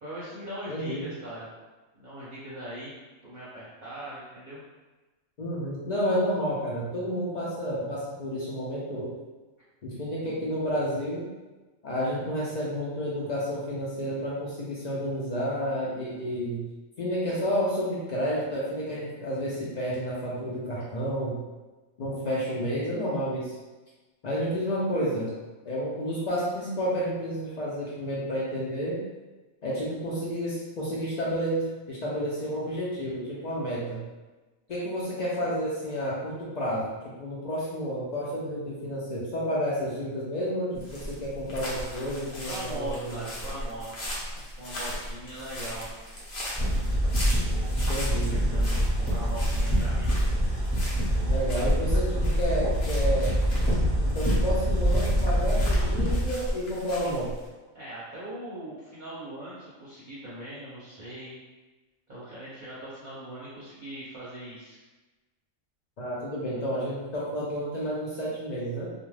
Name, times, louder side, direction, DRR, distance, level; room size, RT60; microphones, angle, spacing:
voice 1, 0.0-1.5 1.9-2.9 3.2-4.6 20.7-20.8 42.4-43.9 44.3-45.9 47.4-47.8 48.3-50.1 51.3-51.5 57.7-61.3 62.1-64.8, right 1 dB, 45° right, -10 dB, 0.7 m, -40 dB
voice 2, 0.7-1.1 5.4-9.1 9.8-11.3 11.8-16.7 17.0-21.4 22.0-23.5 24.2-25.3 25.6-29.0 29.6-34.0 34.7-36.9 37.2-43.1 47.9-48.4 51.3-53.3 54.0-57.3 66.0-68.9, equal, 75° left, -6 dB, 0.3 m, -30 dB
sound 1, 40.7-57.5, equal, 55° left, 0.9 m, -36 dB
sound 2, 46.5-56.2, equal, 10° left, 0.8 m, -25 dB
2.4 x 2.1 x 3.1 m, 1.2 s
omnidirectional pair, 1.4 m